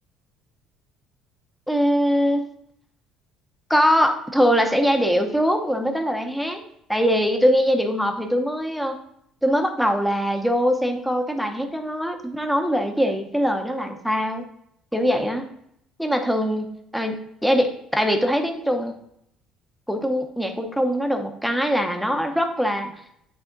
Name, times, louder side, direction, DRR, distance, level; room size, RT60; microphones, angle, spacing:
voice 1, 1.7-2.4 3.7-6.6 6.9-9.0 9.4-14.4 14.9-15.4 16.0-16.7 16.9-17.2 17.4-19.0 19.9-22.9, equal, ahead, 4 dB, 0.9 m, -22 dB
8.8 x 3.5 x 3.8 m, 0.74 s
cardioid pair, 115°, 0 cm